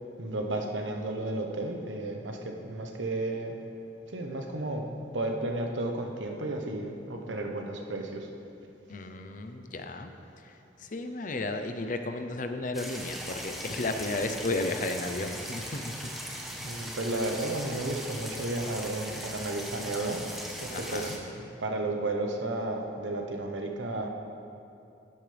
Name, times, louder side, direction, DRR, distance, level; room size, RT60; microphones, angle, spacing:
voice 1, 0.2-3.5 4.1-4.8 5.1-8.3 16.6-24.1, right 2 dB, 90° right, 3 dB, 1.1 m, -33 dB
voice 2, 8.9-10.1 10.8-15.9 20.7-21.2, left 2 dB, 45° left, 7 dB, 0.7 m, -33 dB
sound 1, 12.7-21.2, equal, ahead, 1.1 m, -39 dB
12.5 x 11.0 x 3.4 m, 2.7 s
head